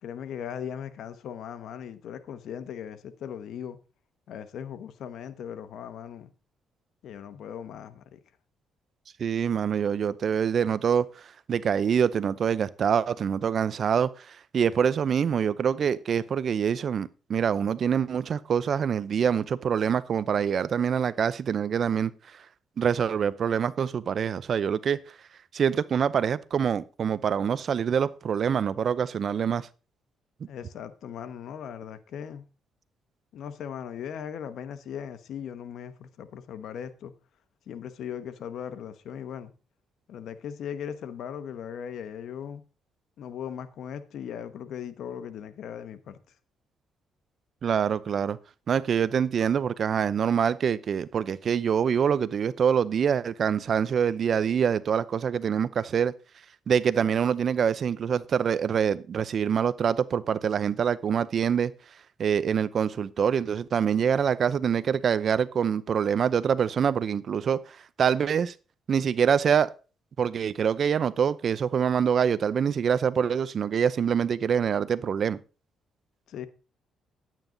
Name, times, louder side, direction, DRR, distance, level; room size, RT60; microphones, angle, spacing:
voice 1, 0.0-3.8 4.3-6.3 7.0-8.2 30.5-32.5 33.3-37.1 37.7-39.5 40.1-42.6 43.2-46.2 76.3-76.5, left 8 dB, 75° left, 1.1 m, -38 dB
voice 2, 9.2-11.1 11.5-22.1 22.8-25.0 25.5-29.7 47.6-48.4 48.7-56.1 56.7-61.7 62.2-67.6 68.0-68.5 68.9-69.7 70.2-75.4, right 7 dB, 55° right, 0.6 m, -25 dB
10.5 x 9.2 x 3.9 m
cardioid pair, 90°, 0 cm